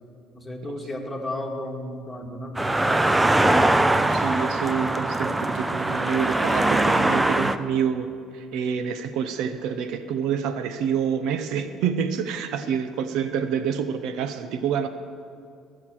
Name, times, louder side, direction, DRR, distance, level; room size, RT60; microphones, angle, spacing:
voice 1, 0.3-3.2, left 1 dB, 10° left, 0 dB, 1.9 m, -34 dB
sound 1, 2.5-7.6, right 2 dB, 10° right, 0.5 m, -22 dB
voice 2, 3.9-14.9, right 7 dB, 75° right, 10 dB, 0.7 m, -27 dB
17.5 x 6.6 x 7.5 m, 2.4 s
cardioid pair, 110°, 0 cm